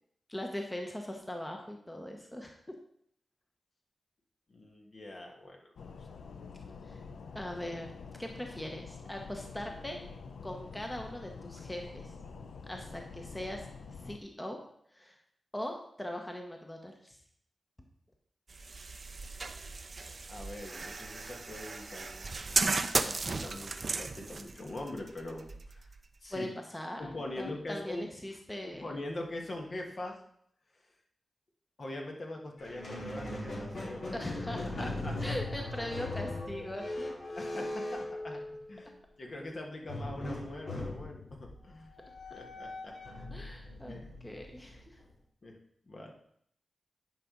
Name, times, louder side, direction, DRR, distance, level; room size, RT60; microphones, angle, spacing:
voice 1, 0.3-2.8 6.9-7.0 7.3-7.9 8.2-10.0 10.4-12.1 12.7-14.6 14.9-15.1 15.5-17.2 26.3-27.0 27.4-28.9 34.1-34.9 35.2-37.1 43.3-45.0, left 1 dB, 15° left, 2 dB, 1.0 m, -40 dB
voice 2, 4.5-6.2 20.3-22.3 23.0-25.9 26.2-26.5 27.0-28.1 28.7-30.2 31.8-34.1 34.8-35.3 36.4-36.7 37.3-38.4 38.7-38.9 39.2-41.9 42.3-43.2 43.8-44.1 45.4-45.6 45.9-46.1, left 1 dB, 55° left, 1 dB, 1.5 m, -43 dB
sound 1, 5.8-14.2, left 5 dB, 85° left, 0.5 m, -47 dB
sound 2, 18.5-26.4, right 3 dB, 50° right, 0.5 m, -35 dB
Squeak, 32.6-38.9 39.9-45.1, left 2 dB, 70° left, 2.3 m, -39 dB
9.7 x 5.0 x 3.9 m, 0.68 s
cardioid pair, 65°, 0 cm